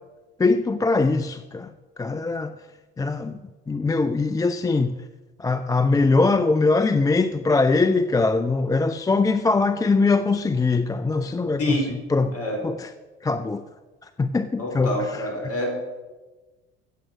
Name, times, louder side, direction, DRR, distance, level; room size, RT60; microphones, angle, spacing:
voice 1, 0.4-1.7 2.0-2.5 3.0-3.4 3.7-5.0 5.4-12.4 12.6-12.9 13.2-13.7 14.2-15.2, left 3 dB, 10° left, 10 dB, 0.5 m, -22 dB
voice 2, 14.6-15.9, left 1 dB, 40° left, 1 dB, 4.7 m, -27 dB
15.0 x 7.8 x 6.1 m, 1.2 s
figure-of-eight pair, 65°, 35 cm